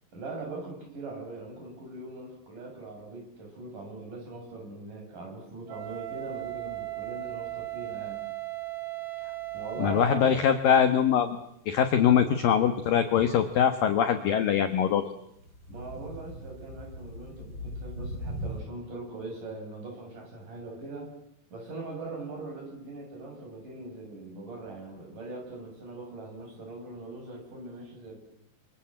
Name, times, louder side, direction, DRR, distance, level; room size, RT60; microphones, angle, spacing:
voice 1, 0.1-8.2 9.5-10.5 12.0-12.3 15.7-21.1 21.5-28.2, right 3 dB, 40° right, 1 dB, 8.6 m, -41 dB
Wind instrument woodwind instrument, 5.7-10.3, right 19 dB, 75° right, 3.9 m, -37 dB
sound 1, 5.8-13.9 14.3-18.6, equal, 20° left, 8.3 m, -44 dB
voice 2, 9.8-15.0, left 8 dB, 70° left, 9 dB, 2.2 m, -23 dB
30.0 x 25.5 x 7.7 m, 0.76 s
omnidirectional pair, 5.6 m